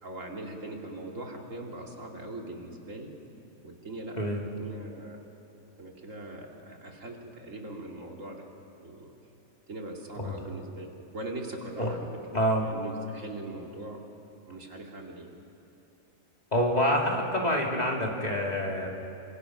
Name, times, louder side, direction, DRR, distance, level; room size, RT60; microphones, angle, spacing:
voice 1, 0.0-3.1 3.6-4.2 4.5-5.2 5.8-8.5 8.8-9.1 9.7-12.1 12.6-14.0 14.5-15.3, right 2 dB, 65° right, 1 dB, 2.7 m, -41 dB
voice 2, 12.3-12.7 16.5-18.9, equal, 30° left, -1 dB, 2.7 m, -27 dB
27.5 x 25.5 x 5.9 m, 2.7 s
omnidirectional pair, 1.4 m